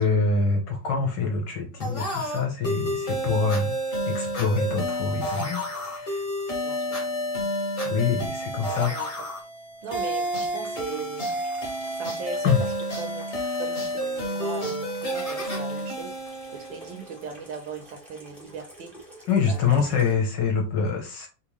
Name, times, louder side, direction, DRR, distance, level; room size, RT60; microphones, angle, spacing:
voice 1, 0.0-3.7 4.0-6.3 7.8-9.2 12.4-12.6 19.3-21.3, left 5 dB, 65° left, 1.2 m, -25 dB
sound 1, 1.8-17.3, equal, 35° left, 0.9 m, -30 dB
voice 2, 6.6-7.0 8.7-9.1 9.8-11.3 12.0-12.6 13.0-13.3 13.6-18.9 19.5-19.8, right 5 dB, 70° right, 1.3 m, -38 dB
Water tap faucet / Sink (filling or washing), 9.8-20.1, equal, ahead, 0.5 m, -50 dB
3.6 x 2.6 x 2.9 m
omnidirectional pair, 2.4 m